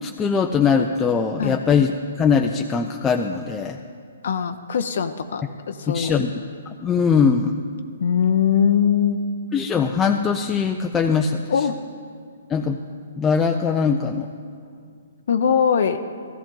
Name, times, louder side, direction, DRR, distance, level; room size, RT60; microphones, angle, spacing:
voice 1, 0.0-1.9 2.2-3.8 5.9-6.4 6.8-7.5 9.5-11.4 12.5-12.8 13.2-14.3, left 6 dB, 15° left, 3 dB, 0.5 m, -21 dB
voice 2, 4.2-6.3 8.0-9.2 11.5-11.8 15.3-16.0, left 7 dB, 65° left, 9 dB, 0.6 m, -21 dB
14.5 x 14.0 x 3.9 m, 2.2 s
hypercardioid pair, 140°, 0 cm